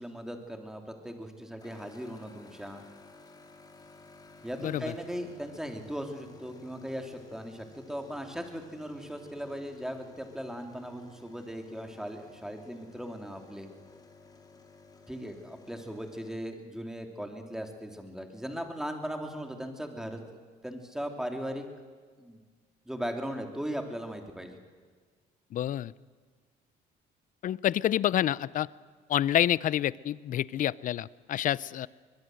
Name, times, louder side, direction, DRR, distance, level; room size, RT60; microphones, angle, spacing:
voice 1, 0.0-2.8 4.4-13.7 15.1-20.2 20.6-21.7 22.2-22.4 22.8-24.6, equal, 5° right, 4 dB, 3.2 m, -38 dB
sound 1, 1.6-16.3, left 3 dB, 20° left, 3.3 m, -54 dB
voice 2, 4.6-4.9 25.5-25.9 27.4-28.7 29.1-31.9, left 11 dB, 50° left, 21 dB, 0.6 m, -28 dB
23.0 x 21.5 x 7.9 m, 1.5 s
cardioid pair, 110°, 17 cm